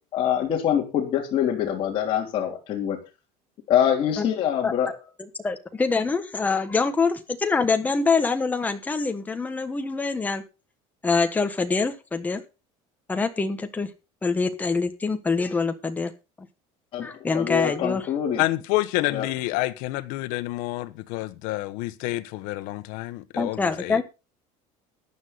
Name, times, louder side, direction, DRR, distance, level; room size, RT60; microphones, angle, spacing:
voice 1, 0.1-3.0 3.7-4.9 16.9-18.4 19.1-19.2, left 9 dB, 40° left, 3.1 m, -24 dB
voice 2, 5.2-10.4 11.0-12.4 13.1-13.9 14.2-16.1 17.0-18.1 23.4-24.0, left 4 dB, 10° left, 1.2 m, -25 dB
voice 3, 18.4-24.0, left 18 dB, 75° left, 1.2 m, -28 dB
14.5 x 10.0 x 4.1 m
cardioid pair, 170°, 14 cm